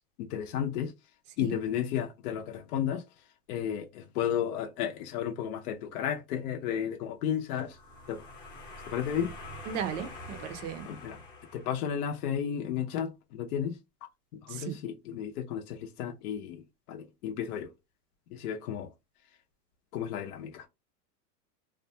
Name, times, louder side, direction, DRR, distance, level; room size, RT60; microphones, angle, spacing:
voice 1, 0.2-0.9 1.4-3.0 3.5-7.8 8.1-8.2 8.9-9.3 10.8-11.2 11.5-13.8 14.4-16.6 16.9-17.7 18.3-18.9 19.9-20.6, left 9 dB, 65° left, 0.6 m, -33 dB
sound 1, 7.5-12.2, left 2 dB, 20° left, 0.7 m, -46 dB
voice 2, 9.7-10.9 14.5-14.8, right 8 dB, 50° right, 0.5 m, -36 dB
2.5 x 2.2 x 2.6 m
supercardioid pair, 155°, 50 cm